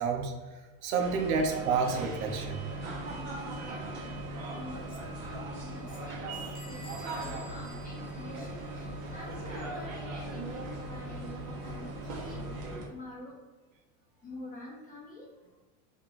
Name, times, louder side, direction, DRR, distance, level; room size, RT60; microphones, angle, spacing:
voice 1, 0.0-2.6, right 5 dB, 80° right, 3 dB, 0.8 m, -30 dB
sound 1, 1.0-12.9, right 2 dB, 40° right, 0.9 m, -39 dB
voice 2, 3.5-4.1 4.5-11.3 11.6-12.4 12.8-13.3 14.2-15.3, left 2 dB, 20° left, -3 dB, 1.0 m, -47 dB
Bell / Squeak, 6.5-9.1, equal, 45° left, 1.1 m, -52 dB
3.6 x 2.4 x 3.8 m, 1.3 s
supercardioid pair, 125°, 40 cm